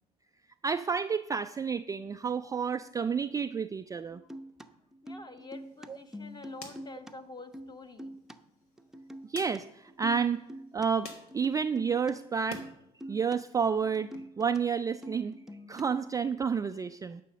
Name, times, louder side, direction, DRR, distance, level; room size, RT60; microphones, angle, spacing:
voice 1, 0.6-4.2 9.3-10.4 10.7-12.7 13.1-15.4 15.7-17.2, right 6 dB, 15° right, 10 dB, 0.4 m, -30 dB
sound 1, 4.1-7.1 7.4-8.4 8.8-9.6 9.9-10.9 11.3-12.1 12.5-12.7 13.0-13.4 13.6-14.6 14.9-16.1, equal, ahead, 0.8 m, -45 dB
voice 2, 5.0-8.2, left 2 dB, 20° left, 7 dB, 1.4 m, -47 dB
sound 2, 5.5-12.7 13.1-14.2, left 3 dB, 75° left, 1.4 m, -53 dB
11.0 x 5.9 x 6.5 m, 0.84 s
figure-of-eight pair, 55°, 19 cm